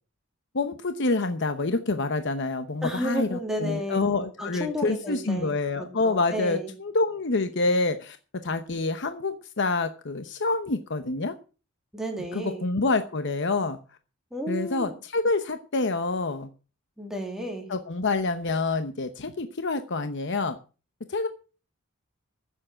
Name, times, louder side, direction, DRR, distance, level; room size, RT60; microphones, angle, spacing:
voice 1, 0.5-8.2 8.4-11.3 12.3-13.8 14.5-16.5 17.7-20.6 21.1-21.3, left 3 dB, 60° left, 0.9 m, -27 dB
voice 2, 2.8-4.0 4.4-6.7 11.9-12.7 14.3-15.0 17.0-17.7, equal, ahead, 2.8 m, -32 dB
15.0 x 7.5 x 5.7 m
head